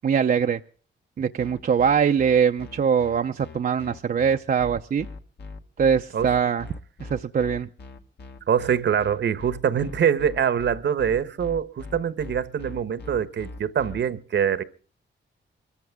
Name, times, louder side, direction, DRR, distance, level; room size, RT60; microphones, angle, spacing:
voice 1, 0.0-0.6 1.2-5.1 5.8-6.7 7.0-7.7, right 7 dB, 45° right, 0.6 m, -22 dB
sound 1, 1.4-14.0, left 3 dB, 60° left, 1.7 m, -40 dB
voice 2, 8.5-14.6, right 8 dB, 65° right, 1.1 m, -24 dB
24.0 x 14.0 x 3.6 m
cardioid pair, 105°, 20 cm